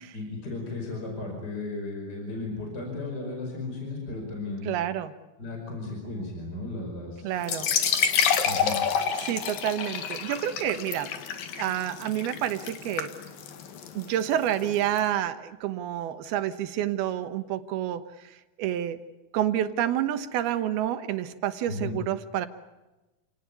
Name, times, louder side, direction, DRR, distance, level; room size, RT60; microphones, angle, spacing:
voice 1, 0.1-4.7 5.4-7.3 8.4-8.7 21.7-22.0, left 2 dB, 25° left, 1 dB, 5.7 m, -35 dB
voice 2, 4.6-5.1 7.2-7.7 9.2-11.1 11.6-13.1 13.9-19.0 19.3-22.5, right 11 dB, 90° right, 11 dB, 3.2 m, -29 dB
sound 1, 7.4-15.0, left 7 dB, 70° left, 3.5 m, -29 dB
29.0 x 18.0 x 9.6 m, 1.1 s
omnidirectional pair, 4.3 m